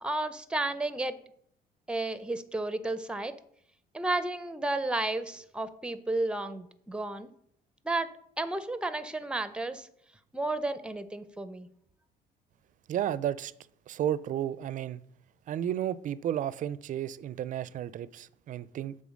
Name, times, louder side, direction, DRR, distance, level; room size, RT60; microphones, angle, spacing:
voice 1, 0.0-1.2 1.9-3.4 3.9-7.3 7.8-8.1 8.4-9.9 10.3-11.7, right 2 dB, 5° right, 0.6 m, -32 dB
voice 2, 12.9-13.5 13.9-15.0 15.5-19.0, right 10 dB, 50° right, 0.4 m, -32 dB
7.0 x 4.3 x 6.3 m
cardioid pair, 110°, 17 cm